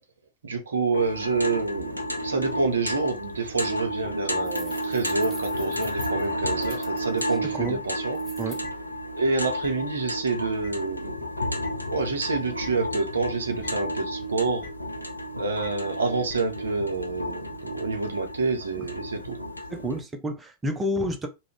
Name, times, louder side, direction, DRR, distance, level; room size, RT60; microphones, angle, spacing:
voice 1, 0.4-8.2 9.1-11.2 11.9-14.7 15.3-19.4, right 4 dB, 70° right, 0.6 m, -28 dB
sound 1, 0.9-20.0, equal, 85° left, 0.4 m, -32 dB
sound 2, 4.4-7.3 8.1-8.6, equal, 5° left, 1.2 m, -46 dB
sound 3, 6.6-6.7 7.6-7.7 8.6-8.7 9.6-9.7 10.6-10.7 11.6-11.7 12.6-12.7 13.6-13.7 14.6-14.7 15.6-15.7 16.3-16.4, left 7 dB, 45° left, 0.9 m, -42 dB
voice 2, 7.4-7.8 8.4-8.7 18.8-18.9 19.7-21.3, equal, 15° right, 0.5 m, -30 dB
2.3 x 2.1 x 3.4 m
figure-of-eight pair, 90°, 0 cm